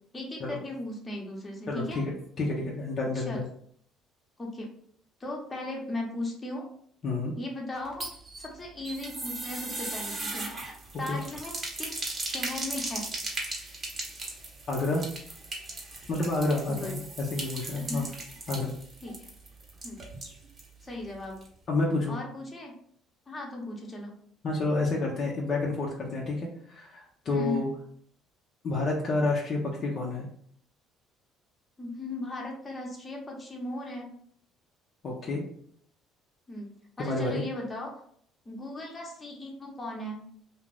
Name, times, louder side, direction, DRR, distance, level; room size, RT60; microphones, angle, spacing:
voice 1, 0.1-2.0 3.1-3.4 4.4-4.7 5.2-6.6 7.4-8.1 8.4-10.5 11.0-13.0 16.7-17.0 17.8-18.1 19.0-19.2 19.8-20.0 20.8-21.4 22.1-22.7 23.3-24.1 27.3-27.6 31.8-34.1 36.5-36.7 37.0-38.0 38.4-40.2, left 1 dB, 25° left, 0 dB, 0.9 m, -37 dB
voice 2, 1.7-3.5 7.0-7.3 11.1-11.2 14.7-15.1 16.1-18.0 18.5-18.7 21.7-22.2 24.4-27.7 28.6-30.3 35.0-35.4 37.0-37.4, left 2 dB, 50° left, -3 dB, 0.6 m, -29 dB
sound 1, 7.8-20.7 21.0-21.1 21.4-21.5, right 2 dB, 35° right, 0.9 m, -38 dB
2.4 x 2.2 x 3.2 m, 0.62 s
supercardioid pair, 80°, 0 cm